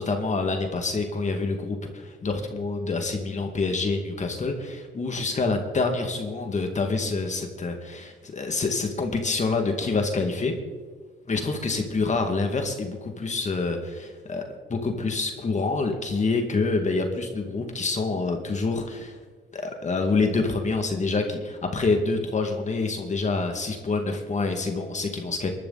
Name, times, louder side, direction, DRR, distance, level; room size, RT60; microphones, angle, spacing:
voice 1, 0.0-10.5 11.3-14.4 14.7-19.2 19.5-25.5, left 3 dB, 35° left, 4 dB, 2.1 m, -27 dB
21.5 x 12.0 x 4.1 m, 1.4 s
cardioid pair, 90°, 20 cm